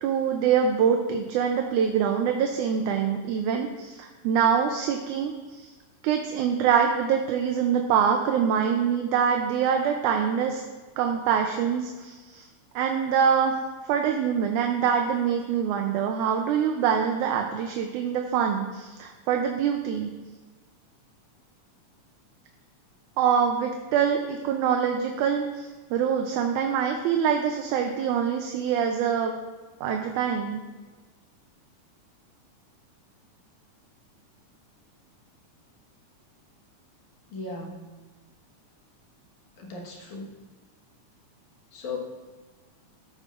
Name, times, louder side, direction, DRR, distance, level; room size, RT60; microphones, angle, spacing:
voice 1, 0.0-5.7 6.0-10.6 11.0-12.5 12.8-13.5 13.8-20.1 23.2-29.3 29.8-30.6, right 7 dB, 80° right, 3 dB, 2.1 m, -25 dB
voice 2, 37.3-37.7 39.7-40.3 41.7-42.0, left 3 dB, 75° left, -1 dB, 2.9 m, -36 dB
14.0 x 8.9 x 2.5 m, 1.3 s
omnidirectional pair, 3.6 m